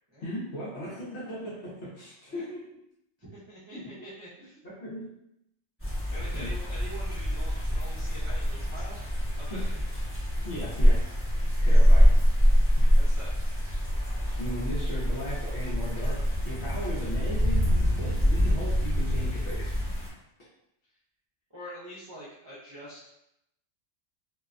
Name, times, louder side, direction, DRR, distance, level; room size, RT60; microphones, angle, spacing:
voice 1, 0.2-2.7 3.7-3.9 4.6-5.1 6.3-6.5 9.5-9.7 10.4-11.0 11.6-12.0 12.8-12.9 14.4-16.2 16.4-19.7, equal, 60° left, -8 dB, 1.0 m, -37 dB
voice 2, 3.2-4.6 5.8-9.0 9.4-9.8 13.0-13.4 21.5-23.1, equal, 35° right, -10 dB, 0.4 m, -45 dB
sound 1, 5.8-20.1, equal, 15° left, 0.6 m, -24 dB
2.6 x 2.1 x 2.4 m, 0.82 s
omnidirectional pair, 1.3 m